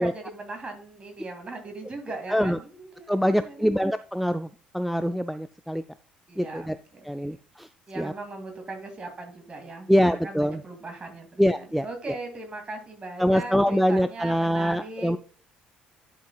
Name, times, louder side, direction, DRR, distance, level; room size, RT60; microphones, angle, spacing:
voice 1, 0.0-3.7 6.3-7.3 7.9-15.2, right 2 dB, 30° right, 4 dB, 2.3 m, -39 dB
voice 2, 3.1-4.5 4.7-5.8 6.4-6.8 7.1-7.7 8.0-8.1 9.9-10.6 11.4-11.9 13.2-15.2, equal, ahead, 11 dB, 0.3 m, -24 dB
11.0 x 5.3 x 2.3 m, 0.41 s
figure-of-eight pair, 50°, 4 cm